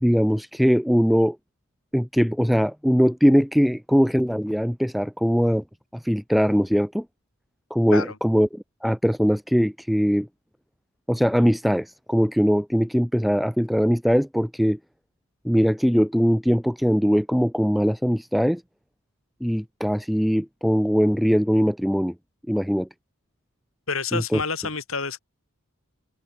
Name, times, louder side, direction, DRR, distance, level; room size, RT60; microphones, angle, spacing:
voice 1, 0.0-1.4 1.9-5.6 5.9-7.1 7.7-10.3 11.1-14.8 15.4-18.6 19.4-22.1 22.5-22.9 24.1-24.4, equal, ahead, 0.6 m, -21 dB
voice 2, 23.9-25.2, left 4 dB, 75° left, 7.0 m, -28 dB
head